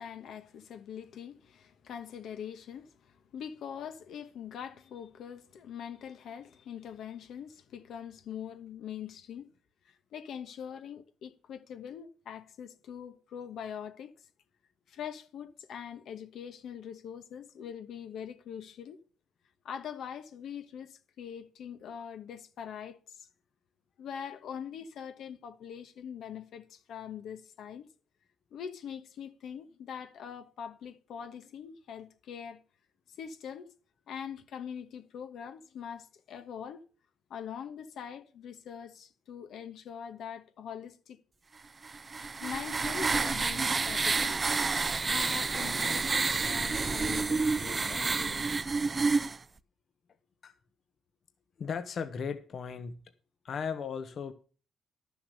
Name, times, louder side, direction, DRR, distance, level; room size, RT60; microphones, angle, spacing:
voice 1, 0.0-9.5 9.8-14.3 14.9-19.0 19.6-23.3 24.0-27.9 28.5-32.6 33.2-33.7 34.1-36.8 37.3-41.2 42.4-44.4 45.0-48.4, left 8 dB, 70° left, 1.3 m, -43 dB
sound 1, 41.8-49.4, right 4 dB, 30° right, 0.6 m, -29 dB
voice 2, 51.6-53.0 53.4-54.3, left 6 dB, 55° left, 1.2 m, -36 dB
11.5 x 7.1 x 6.6 m
cardioid pair, 90°, 0 cm